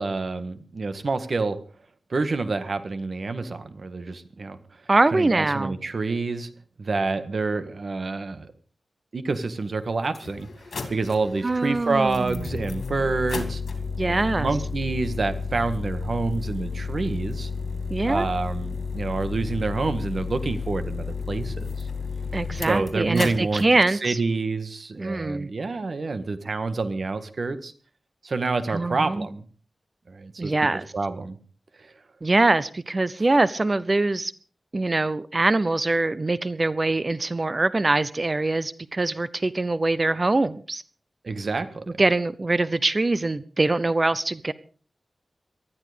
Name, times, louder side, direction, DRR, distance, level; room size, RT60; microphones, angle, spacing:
voice 1, 0.0-1.6 2.1-4.6 5.1-6.5 6.8-8.5 9.1-10.5 10.9-13.6 14.0-17.5 18.1-21.7 22.6-27.7 28.2-29.4 30.1-30.5 30.9-31.4 31.8-31.9 41.2-41.8, right 3 dB, 55° right, 1.7 m, -28 dB
voice 2, 4.9-5.8 11.4-12.4 14.0-14.5 17.9-18.2 22.3-24.2 25.0-25.5 28.7-29.3 30.4-30.8 32.2-34.3 34.7-40.8 42.0-44.5, right 2 dB, 35° right, 0.7 m, -23 dB
sound 1, 9.4-9.5 10.0-23.7, left 4 dB, 80° left, 2.8 m, -32 dB
19.5 x 13.0 x 5.1 m
wide cardioid pair, 115°, 0 cm